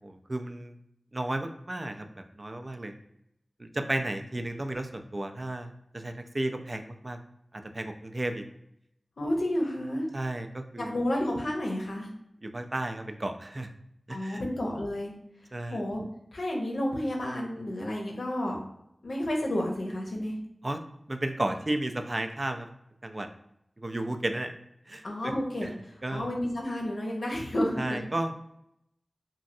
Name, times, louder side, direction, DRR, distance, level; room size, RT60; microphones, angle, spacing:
voice 1, 0.0-0.8 1.1-2.1 2.4-2.9 3.6-7.2 7.5-8.4 10.1-10.9 12.4-13.7 14.1-14.4 15.5-15.8 20.6-20.8 21.1-22.7 23.0-23.3 23.8-24.5 24.9-25.3 25.6-25.7 26.0-26.3 27.8-28.5, right 1 dB, 40° right, 6 dB, 0.3 m, -33 dB
voice 2, 9.2-10.1 10.8-12.1 14.1-15.1 15.7-16.0 16.3-18.6 19.0-20.4 25.0-28.0, left 1 dB, 85° left, 0 dB, 0.7 m, -31 dB
3.0 x 2.6 x 2.6 m, 0.78 s
wide cardioid pair, 50°, 0 cm